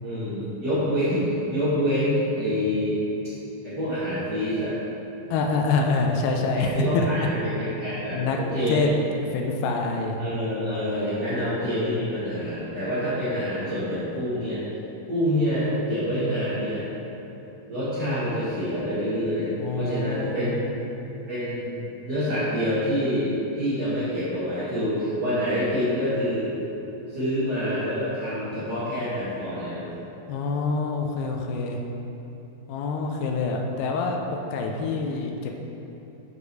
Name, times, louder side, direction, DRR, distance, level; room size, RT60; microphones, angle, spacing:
voice 1, 0.0-3.0 3.6-4.8 6.5-8.8 10.2-14.6 15.1-16.9 17.7-20.7 21.3-21.7 22.0-26.5 27.1-29.9, equal, 40° right, -15 dB, 1.5 m, -26 dB
voice 2, 5.3-7.1 8.1-8.4 8.7-8.9 9.3-10.2 10.7-10.8 19.6-20.6 30.3-31.8 32.7-35.5, left 4 dB, 85° left, 2 dB, 2.3 m, -26 dB
9.3 x 5.1 x 4.8 m, 2.9 s
omnidirectional pair, 5.0 m